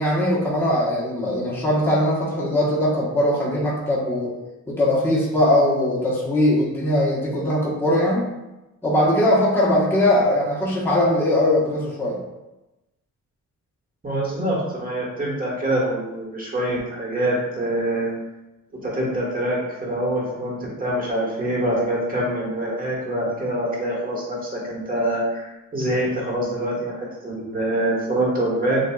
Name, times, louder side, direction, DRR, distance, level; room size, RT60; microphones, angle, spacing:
voice 1, 0.0-4.3 4.7-8.3 8.8-12.2, left 1 dB, 5° left, -7 dB, 1.3 m, -20 dB
voice 2, 14.0-18.1 18.7-28.8, right 1 dB, 25° right, -4 dB, 1.6 m, -25 dB
7.3 x 2.7 x 2.4 m, 0.99 s
cardioid pair, 120°, 31 cm